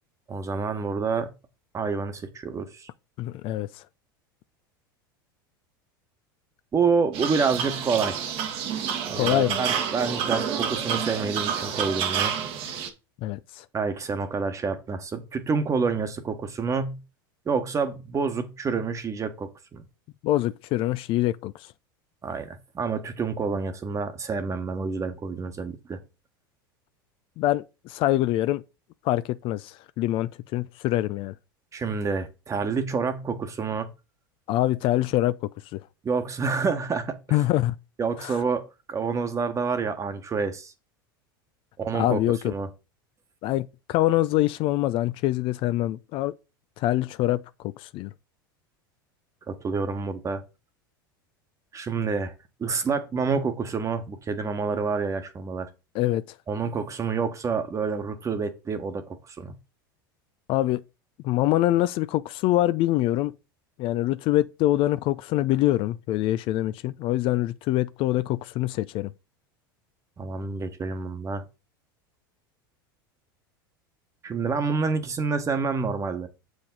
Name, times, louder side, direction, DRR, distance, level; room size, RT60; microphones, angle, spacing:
voice 1, 0.3-1.3 1.7-2.9 6.7-8.2 9.1-12.3 13.7-17.0 17.5-19.8 22.2-26.0 31.7-33.9 36.0-37.4 38.0-40.7 41.8-42.2 42.4-42.7 49.5-50.4 51.7-52.3 52.6-55.7 56.5-59.5 70.2-71.4 74.2-76.3, right 5 dB, 25° right, 1.3 m, -28 dB
voice 2, 3.2-3.8 9.2-9.6 13.2-13.6 20.2-21.5 27.4-28.6 29.0-31.3 34.5-35.4 35.7-35.8 37.3-37.7 38.2-38.4 41.9-42.5 43.4-46.3 46.8-48.1 55.9-56.2 60.5-60.8 61.2-63.3 63.8-69.1, left 15 dB, 50° left, 0.4 m, -25 dB
sound 1, 7.1-12.9, right 8 dB, 50° right, 1.3 m, -29 dB
7.1 x 4.9 x 4.0 m
hypercardioid pair, 90°, 12 cm